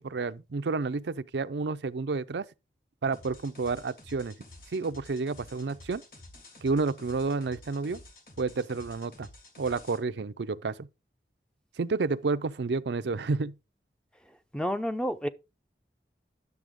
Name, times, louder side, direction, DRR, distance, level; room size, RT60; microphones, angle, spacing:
voice 1, 0.0-2.4 3.0-4.3 4.7-6.0 6.6-8.0 8.4-9.3 9.6-10.9 11.8-13.5, right 4 dB, 80° right, 0.5 m, -30 dB
sound 1, 3.1-10.0, left 2 dB, 55° left, 2.8 m, -51 dB
voice 2, 14.5-15.3, equal, 5° left, 0.5 m, -29 dB
10.5 x 6.9 x 3.6 m
head